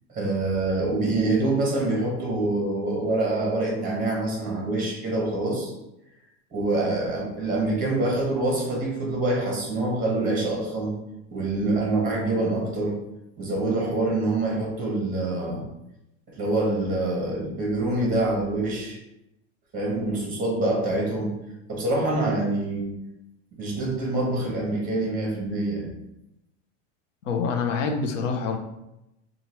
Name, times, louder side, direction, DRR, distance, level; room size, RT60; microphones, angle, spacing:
voice 1, 0.1-5.7 6.5-10.9 11.3-13.0 13.4-15.6 16.4-19.0 19.7-21.4 21.7-22.9 23.6-25.9, right 2 dB, 20° right, -1 dB, 1.3 m, -25 dB
voice 2, 27.2-28.6, left 5 dB, 85° left, 4 dB, 0.8 m, -26 dB
5.6 x 2.5 x 3.0 m, 0.88 s
supercardioid pair, 140°, 37 cm